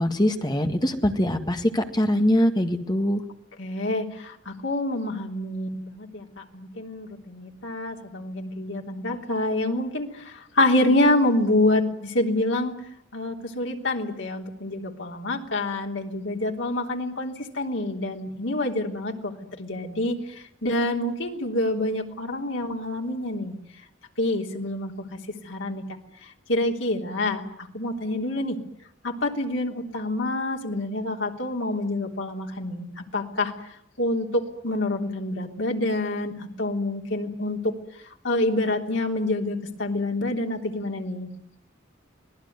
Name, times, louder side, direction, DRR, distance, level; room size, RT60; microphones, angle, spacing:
voice 1, 0.0-3.2, left 1 dB, 20° left, 6 dB, 1.9 m, -23 dB
voice 2, 3.6-12.7 13.1-19.3 19.6-20.2 20.6-23.6 24.2-25.2 25.5-25.8 26.5-28.6 29.0-33.5 34.0-37.7 38.2-41.3, left 1 dB, 80° left, 2 dB, 3.5 m, -27 dB
25.5 x 19.0 x 9.6 m, 0.75 s
head